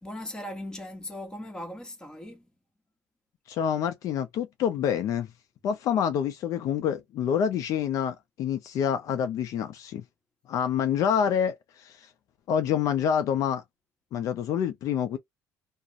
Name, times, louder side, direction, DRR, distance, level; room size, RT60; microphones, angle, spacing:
voice 1, 0.0-2.5, left 1 dB, 10° left, 1.0 m, -38 dB
voice 2, 3.5-5.3 5.6-10.0 10.5-12.1 12.5-13.6 14.1-15.2, left 8 dB, 65° left, 0.4 m, -27 dB
2.4 x 2.0 x 2.7 m
cardioid pair, 95°, 6 cm